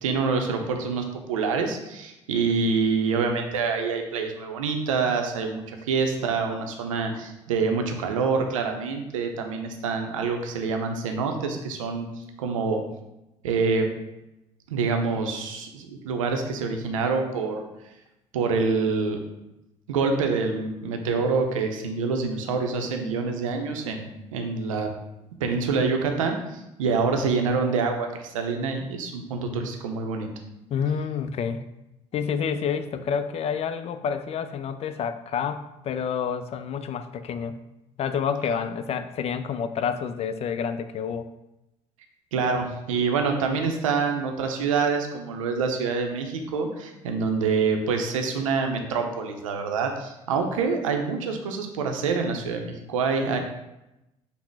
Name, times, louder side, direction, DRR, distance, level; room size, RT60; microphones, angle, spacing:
voice 1, 0.0-12.1 12.4-12.8 13.4-13.9 14.7-17.6 18.3-19.2 19.9-24.9 25.4-26.4 26.8-30.3 42.3-53.4, right 4 dB, 80° right, 4 dB, 0.6 m, -26 dB
voice 2, 30.7-31.6 32.1-37.6 38.0-41.3, left 7 dB, 40° left, 11 dB, 0.4 m, -28 dB
5.6 x 2.1 x 4.5 m, 0.93 s
hypercardioid pair, 55°, 17 cm